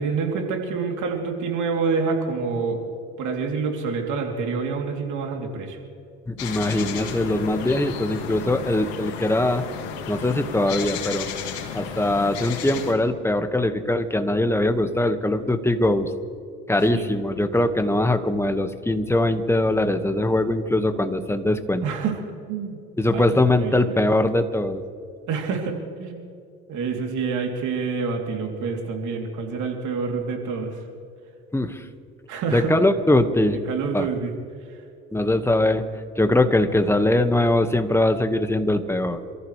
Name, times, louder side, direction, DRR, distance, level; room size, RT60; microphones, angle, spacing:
voice 1, 0.0-2.8 3.2-5.8 16.9-17.1 21.8-22.2 22.5-22.8 23.1-23.2 23.6-24.0 25.3-26.3 26.7-30.8 32.3-32.7 33.7-34.3, right 5 dB, 65° right, 2 dB, 3.3 m, -27 dB
voice 2, 6.3-9.6 10.1-11.3 11.7-16.1 16.7-21.8 23.0-24.8 31.5-31.8 32.5-33.6 33.9-34.1 35.1-35.8 36.2-39.2, left 1 dB, 10° left, 7 dB, 1.6 m, -21 dB
sound 1, 6.4-12.9, left 7 dB, 90° left, 2.1 m, -33 dB
28.0 x 14.5 x 3.3 m, 2.5 s
supercardioid pair, 70°, 32 cm